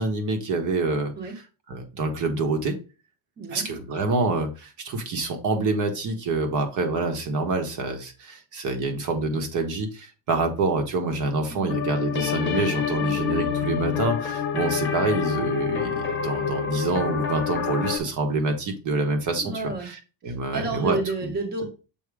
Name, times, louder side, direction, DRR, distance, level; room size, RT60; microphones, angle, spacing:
voice 1, 0.0-1.1 1.7-2.8 3.5-19.5 19.8-20.0 20.2-21.0, right 3 dB, 40° right, 5 dB, 1.2 m, -26 dB
voice 2, 3.4-3.7 11.5-11.7 13.0-13.2 19.3-19.9 20.2-21.7, right 3 dB, 20° right, 2 dB, 1.1 m, -31 dB
sound 1, 11.7-18.0, left 7 dB, 25° left, 1.0 m, -27 dB
7.1 x 2.9 x 4.8 m, 0.32 s
cardioid pair, 175°, 46 cm